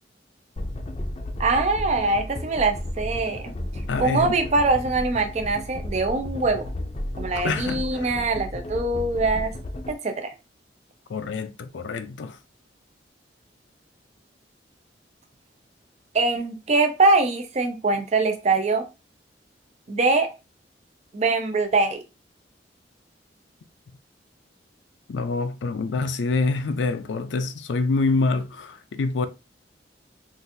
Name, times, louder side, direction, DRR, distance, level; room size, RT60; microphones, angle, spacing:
sound 1, 0.6-9.9, left 1 dB, 35° left, 0.5 m, -33 dB
voice 1, 1.4-3.4 4.0-6.6 7.2-9.5 9.9-10.3 16.1-18.8 19.9-20.3 21.1-22.0, right 3 dB, 40° right, 0.5 m, -23 dB
voice 2, 3.9-4.4 7.4-8.1 11.1-12.4 25.1-29.3, left 3 dB, 90° left, 0.4 m, -26 dB
3.9 x 2.5 x 2.6 m
head